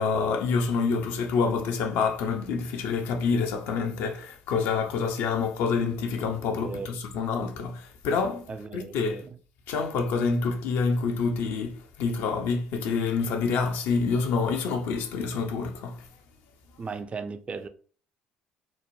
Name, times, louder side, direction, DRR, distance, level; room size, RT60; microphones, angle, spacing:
voice 1, 0.0-8.5 8.7-9.2 9.7-16.0, left 5 dB, 65° left, 0.4 m, -27 dB
voice 2, 6.6-7.0 8.5-9.3 16.8-17.7, right 4 dB, 30° right, 0.4 m, -36 dB
3.0 x 2.0 x 2.6 m
hypercardioid pair, 55°, 4 cm